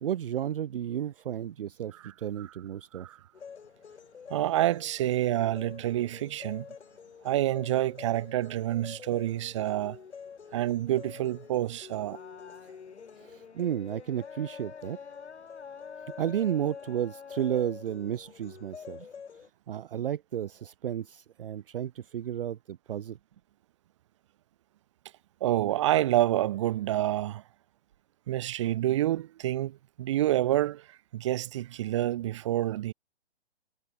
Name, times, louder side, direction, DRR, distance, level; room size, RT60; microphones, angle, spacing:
voice 1, 0.0-3.1 13.2-15.0 16.2-19.1 19.7-23.2, right 10 dB, 55° right, 0.5 m, -32 dB
voice 2, 2.0-2.5 2.9-3.2 4.3-6.7 7.2-10.0 10.5-12.2 25.4-27.4 28.3-32.9, right 14 dB, 30° right, 1.0 m, -28 dB
sound 1, 3.3-19.5, left 6 dB, 90° left, 1.7 m, -46 dB
hypercardioid pair, 160°, 33 cm